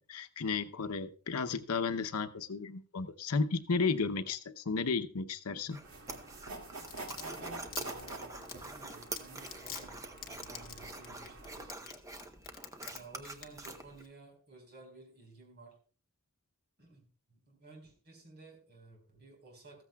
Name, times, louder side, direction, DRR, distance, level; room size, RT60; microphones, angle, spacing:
voice 1, 0.0-5.8, left 4 dB, 85° left, 9 dB, 0.8 m, -33 dB
sound 1, 5.7-14.0, right 2 dB, 15° right, 0.8 m, -46 dB
sound 2, 5.8-11.7, right 2 dB, 75° right, 2.2 m, -47 dB
Domestic sounds home sounds, 6.6-13.0 13.2-13.7 14.0-14.1, left 10 dB, 40° left, 1.4 m, -44 dB
voice 2, 7.2-11.8 12.9-15.8 16.8-19.8, right 2 dB, 50° right, 2 dB, 4.6 m, -54 dB
14.5 x 14.5 x 2.3 m, 0.39 s
head